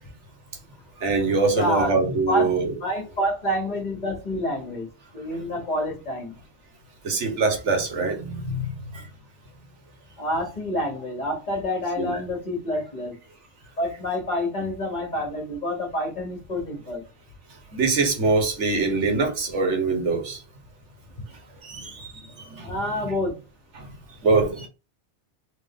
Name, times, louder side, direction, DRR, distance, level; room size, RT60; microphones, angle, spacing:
voice 1, 1.0-2.7 7.0-9.1 12.0-12.2 17.7-20.4 21.6-22.8 23.7-23.9 24.2-24.7, right 3 dB, 90° right, 1.5 m, -24 dB
voice 2, 1.5-1.9 2.3-2.5 2.8-4.9 5.1-6.4 10.2-13.2 13.8-17.0 22.6-23.4, left 1 dB, 40° left, 1.2 m, -28 dB
3.5 x 3.2 x 3.7 m
omnidirectional pair, 1.2 m